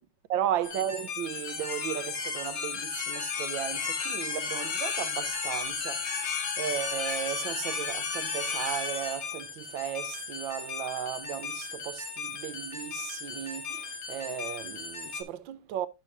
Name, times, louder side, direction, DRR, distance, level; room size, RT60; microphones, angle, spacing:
voice 1, 0.3-15.9, right 10 dB, 70° right, 1.4 m, -35 dB
sound 1, 0.6-15.2, left 5 dB, 65° left, 2.2 m, -34 dB
12.0 x 6.3 x 2.9 m
omnidirectional pair, 2.3 m